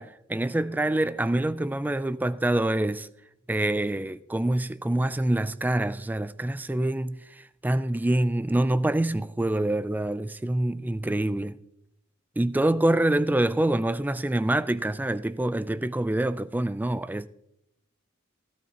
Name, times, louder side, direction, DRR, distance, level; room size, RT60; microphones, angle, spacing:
voice 1, 0.0-3.1 3.5-11.6 12.4-17.3, right 1 dB, 10° right, 0.3 m, -26 dB
16.5 x 12.0 x 2.9 m
head